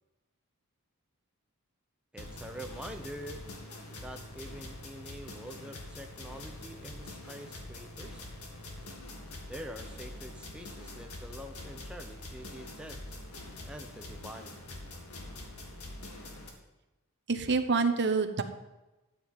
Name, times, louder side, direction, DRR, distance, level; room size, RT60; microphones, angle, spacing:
voice 1, 2.1-3.5 4.0-8.2 9.5-13.0 13.6-14.6, right 1 dB, 5° right, 3 dB, 0.7 m, -45 dB
sound 1, 2.2-16.5, left 1 dB, 85° left, 2.1 m, -45 dB
voice 2, 17.3-18.4, right 4 dB, 55° right, 8 dB, 1.0 m, -27 dB
12.5 x 9.2 x 5.2 m, 1.0 s
head